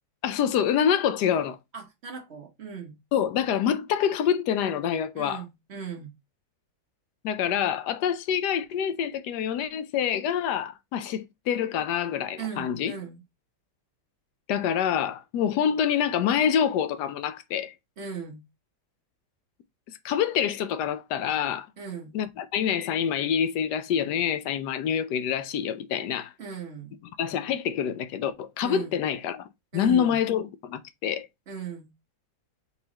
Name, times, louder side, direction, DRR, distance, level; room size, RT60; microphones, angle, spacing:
voice 1, 0.2-1.6 3.1-5.4 7.2-12.9 14.5-17.7 20.0-21.7 22.1-26.3 27.2-29.5 29.7-31.3, left 8 dB, 80° left, 1.2 m, -26 dB
voice 2, 1.7-2.9 5.1-6.1 12.4-13.2 18.0-18.4 21.8-22.2 26.4-27.0 28.6-29.0 29.7-30.2 31.5-31.9, right 6 dB, 45° right, 1.0 m, -38 dB
4.1 x 3.8 x 2.9 m
omnidirectional pair, 1.8 m